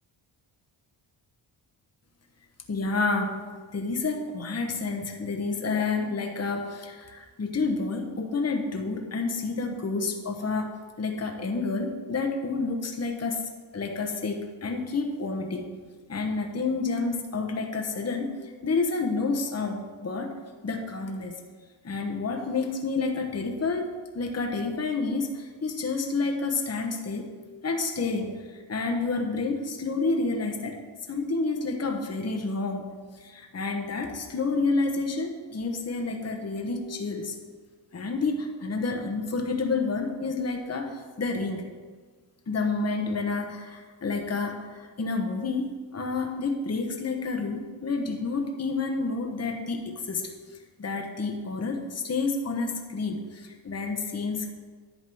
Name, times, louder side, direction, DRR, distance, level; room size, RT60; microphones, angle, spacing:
voice 1, 2.7-13.4 13.7-15.7 16.1-20.3 20.6-21.4 21.8-23.9 24.1-27.3 27.6-30.8 31.1-37.4 37.9-41.7 42.5-50.3 50.8-54.5, left 3 dB, 30° left, 3 dB, 1.2 m, -29 dB
11.0 x 4.0 x 7.7 m, 1.5 s
cardioid pair, 80°, 47 cm